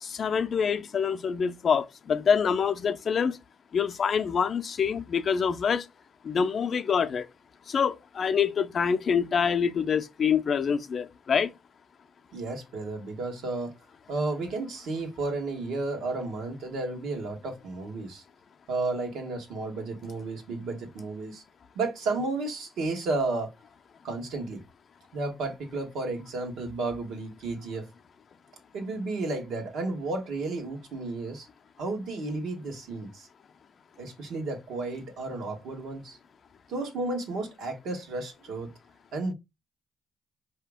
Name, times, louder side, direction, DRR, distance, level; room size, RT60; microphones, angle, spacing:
voice 1, 0.0-3.4 3.7-5.9 6.2-7.3 7.7-11.5, left 6 dB, 50° left, 0.5 m, -26 dB
voice 2, 12.3-13.7 14.1-18.2 18.7-21.4 21.7-23.5 24.0-24.6 25.1-27.9 28.7-31.5 31.8-33.3 34.0-36.2 36.7-38.7 39.1-39.3, right 3 dB, 80° right, 1.2 m, -32 dB
4.9 x 2.8 x 3.5 m
cardioid pair, 90°, 0 cm